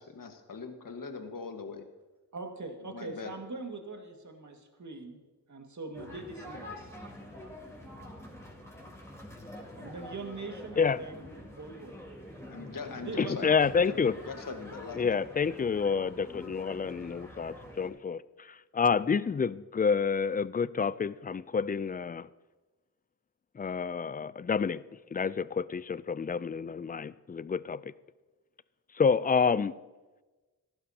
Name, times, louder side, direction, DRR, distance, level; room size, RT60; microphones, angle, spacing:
voice 1, 0.0-1.9 2.9-3.4 12.5-13.5 13.8-13.9 14.3-15.2, left 5 dB, 50° left, 1.6 m, -41 dB
voice 2, 2.3-5.2 5.5-6.9 9.8-12.0 12.7-14.4, right 3 dB, 45° right, 2.0 m, -42 dB
sound 1, 5.9-17.9, left 1 dB, 5° left, 3.9 m, -46 dB
voice 3, 13.2-14.2 14.9-22.3 23.6-24.8 25.1-27.8 28.9-29.8, left 5 dB, 20° left, 0.4 m, -28 dB
15.0 x 11.5 x 2.9 m
supercardioid pair, 40°, 42 cm